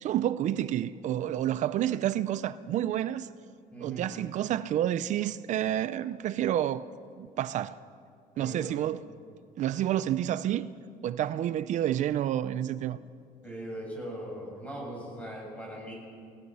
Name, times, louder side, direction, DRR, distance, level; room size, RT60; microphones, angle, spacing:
voice 1, 0.0-3.3 3.8-6.9 7.2-7.8 8.4-9.0 9.6-10.7 11.0-13.0, right 11 dB, 60° right, 0.6 m, -29 dB
voice 2, 3.7-4.1 8.3-8.7 13.4-15.9, equal, 10° left, 7.1 m, -40 dB
28.5 x 17.5 x 5.6 m
cardioid pair, 155°, 14 cm